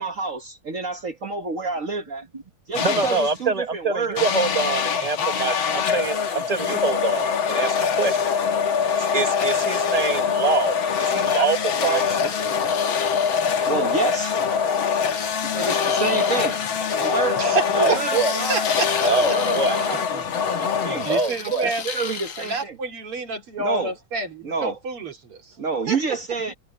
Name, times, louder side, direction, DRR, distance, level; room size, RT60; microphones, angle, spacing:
voice 1, 0.0-2.2 2.7-4.2 12.2-12.3 13.7-14.4 15.5-16.6 17.0-17.4 17.8-18.7 19.2-20.2 20.5-21.1 21.6-22.8 23.6-23.9 24.4-24.8 25.6-26.5, right 4 dB, 45° right, 1.3 m, -28 dB
sound 1, 2.7-3.4 4.2-21.5, left 6 dB, 65° left, 2.3 m, -24 dB
voice 2, 2.8-8.3 9.1-12.2 17.7-18.3 19.0-19.8 21.1-21.7, right 4 dB, 30° right, 0.7 m, -25 dB
sound 2, 12.0-13.7 15.0-16.8 18.0-20.0 21.0-22.6, left 7 dB, 50° left, 1.1 m, -34 dB
voice 3, 17.4-18.1 18.4-19.4 19.9-20.1 21.0-21.9 22.4-25.6 25.9-26.0, right 3 dB, 85° right, 4.2 m, -29 dB
omnidirectional pair, 2.4 m